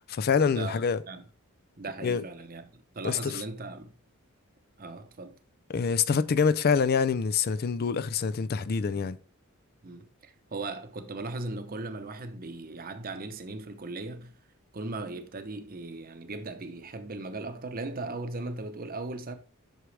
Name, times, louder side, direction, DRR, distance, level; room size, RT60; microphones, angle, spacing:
voice 1, 0.1-1.0 2.0-2.2 3.0-3.4 5.7-9.2, left 5 dB, 45° left, 0.4 m, -26 dB
voice 2, 1.8-2.7 2.9-3.9 4.8-5.3 9.8-14.3 14.7-19.4, right 2 dB, 40° right, 0.8 m, -38 dB
8.0 x 6.1 x 3.3 m
head